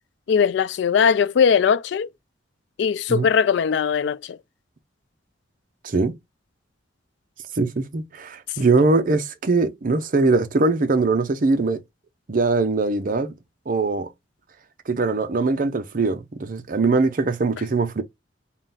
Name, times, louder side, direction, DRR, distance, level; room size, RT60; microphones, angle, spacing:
voice 1, 0.3-2.1 2.8-4.4, left 6 dB, 65° left, 0.3 m, -20 dB
voice 2, 7.6-11.8 12.3-13.3 13.7-14.1 14.9-18.0, right 3 dB, 45° right, 0.6 m, -21 dB
3.7 x 2.2 x 3.9 m
head